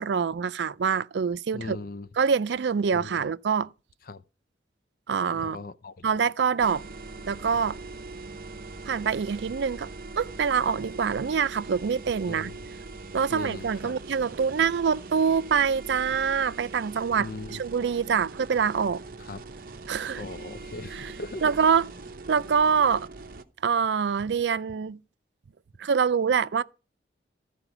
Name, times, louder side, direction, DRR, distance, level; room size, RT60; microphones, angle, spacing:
voice 1, 0.0-1.8 2.2-3.7 5.1-5.6 6.0-6.8 7.3-7.8 8.9-9.9 10.2-12.5 13.1-19.0 19.9-20.2 20.9-21.1 21.4-21.9 22.3-23.1 23.6-25.0 25.8-26.6, right 6 dB, 70° right, 0.4 m, -25 dB
voice 2, 1.5-2.1 2.9-3.3 4.0-4.2 5.3-6.2 12.2-12.6 13.3-14.0 17.2-17.6 19.2-19.4 20.2-21.4, left 3 dB, 50° left, 0.5 m, -39 dB
sound 1, 6.6-23.4, right 3 dB, 50° right, 0.8 m, -42 dB
14.5 x 4.9 x 6.0 m
head